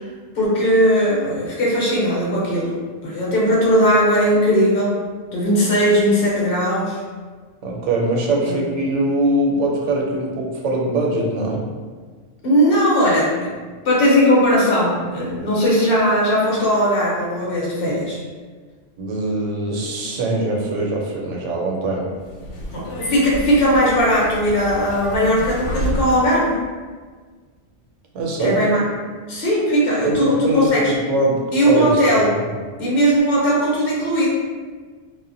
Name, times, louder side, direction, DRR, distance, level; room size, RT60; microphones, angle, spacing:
voice 1, 0.3-2.8 3.0-5.0 5.3-7.0 8.5-8.6 12.4-13.5 13.8-18.2 22.7-26.6 28.4-28.9 29.3-30.9 31.5-32.3 32.8-34.3, equal, 55° left, -5 dB, 0.9 m, -18 dB
voice 2, 7.6-11.6 19.0-22.1 28.1-28.6 30.0-32.0, right 1 dB, 85° right, -1 dB, 0.9 m, -22 dB
Subway metro underground, 22.1-26.4, equal, 80° left, 1.0 m, -29 dB
2.1 x 2.1 x 3.7 m, 1.5 s
omnidirectional pair, 1.2 m